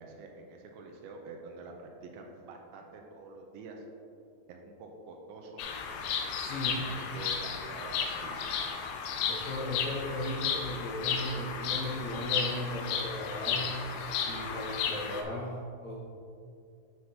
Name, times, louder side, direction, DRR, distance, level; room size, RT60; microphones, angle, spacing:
voice 1, 0.0-3.9 4.5-5.6 6.7-8.5, right 3 dB, 80° right, 2 dB, 2.4 m, -47 dB
Bird vocalization bird call bird song, 5.6-15.2, left 6 dB, 85° left, 2.6 m, -34 dB
voice 2, 6.2-6.8 9.3-13.9 14.2-15.9, left 1 dB, 70° left, -7 dB, 1.8 m, -36 dB
9.6 x 6.0 x 2.8 m, 2.5 s
omnidirectional pair, 4.5 m